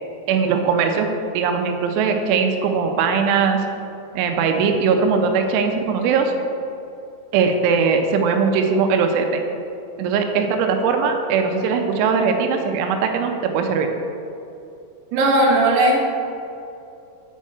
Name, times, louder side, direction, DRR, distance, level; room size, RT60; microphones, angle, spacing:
voice 1, 0.3-1.1 1.3-3.6 4.1-6.3 7.3-9.4 10.0-13.9, right 5 dB, 85° right, 4 dB, 3.2 m, -20 dB
voice 2, 15.1-16.0, right 1 dB, 60° right, -3 dB, 2.2 m, -16 dB
8.4 x 5.5 x 6.3 m, 2.7 s
omnidirectional pair, 5.3 m